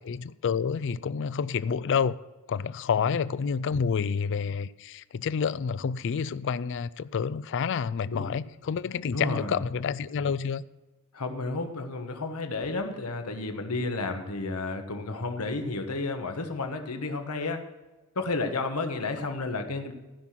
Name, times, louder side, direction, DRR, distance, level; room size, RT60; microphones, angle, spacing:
voice 1, 0.0-2.2 2.5-10.6, left 6 dB, 55° left, 0.4 m, -29 dB
voice 2, 9.1-9.6 11.1-17.6 18.1-19.9, left 3 dB, 85° left, 1.3 m, -32 dB
14.5 x 5.9 x 6.2 m
head